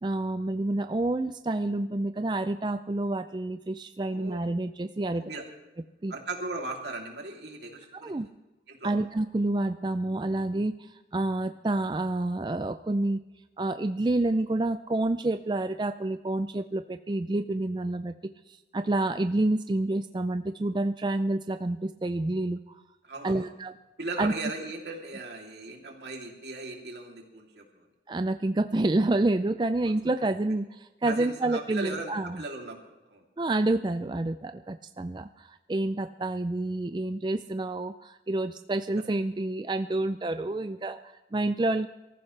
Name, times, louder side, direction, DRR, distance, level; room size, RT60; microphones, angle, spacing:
voice 1, 0.0-5.2 6.0-6.1 8.0-8.3 8.8-13.2 13.6-18.1 18.5-22.8 23.2-23.7 24.2-24.3 28.1-32.4 33.4-41.9, right 2 dB, 25° right, 9 dB, 0.4 m, -28 dB
voice 2, 5.1-5.4 6.1-8.2 8.7-8.9 23.0-23.5 24.0-27.9 29.8-29.9 31.1-33.2, right 3 dB, 75° right, 1 dB, 3.0 m, -38 dB
24.0 x 14.0 x 3.3 m, 1.1 s
head